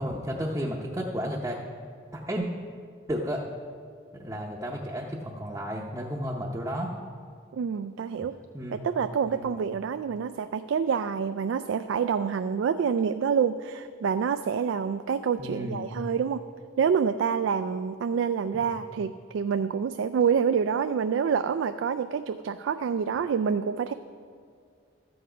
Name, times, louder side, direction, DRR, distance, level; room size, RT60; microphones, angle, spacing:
voice 1, 0.0-1.6 2.1-2.5 3.1-3.4 4.1-6.9 8.5-8.8 9.3-9.5 15.4-15.8 18.5-18.7, equal, 15° right, -3 dB, 0.6 m, -32 dB
voice 2, 7.5-8.3 8.7-16.4 16.8-23.9, right 6 dB, 85° right, 9 dB, 0.3 m, -27 dB
13.0 x 7.9 x 4.9 m, 2.2 s
head